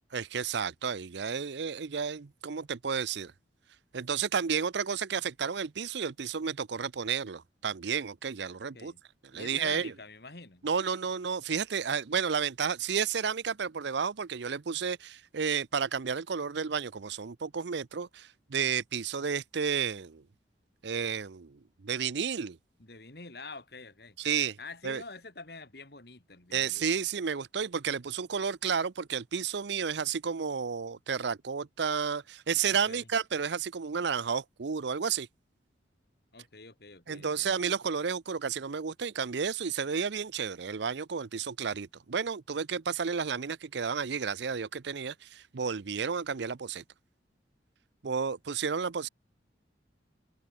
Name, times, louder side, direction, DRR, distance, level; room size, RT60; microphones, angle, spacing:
voice 1, 0.1-3.3 3.9-8.9 9.3-9.9 10.6-20.2 20.8-22.6 24.2-24.6 24.8-25.0 26.5-35.3 37.1-46.8 48.0-49.1, right 6 dB, 65° right, 0.6 m, -32 dB
voice 2, 9.3-10.6 22.8-24.2 24.6-26.8 32.7-33.1 36.3-37.6, left 3 dB, 55° left, 2.6 m, -47 dB
head